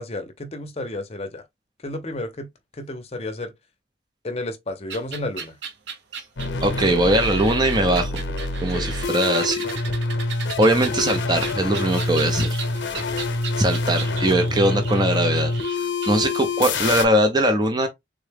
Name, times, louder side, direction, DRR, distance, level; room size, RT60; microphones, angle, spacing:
voice 1, 0.0-1.4 1.8-2.5 2.8-3.5 4.2-5.5 8.7-8.9, left 2 dB, 35° left, 0.6 m, -31 dB
sound 1, 4.9-16.8, right 6 dB, 70° right, 0.7 m, -36 dB
sound 2, 6.4-17.0, left 3 dB, 85° left, 0.7 m, -26 dB
voice 2, 6.6-8.1 8.6-9.8 10.6-12.5 13.6-15.5 15.8-17.9, right 1 dB, 25° right, 0.5 m, -21 dB
3.7 x 2.2 x 3.3 m
head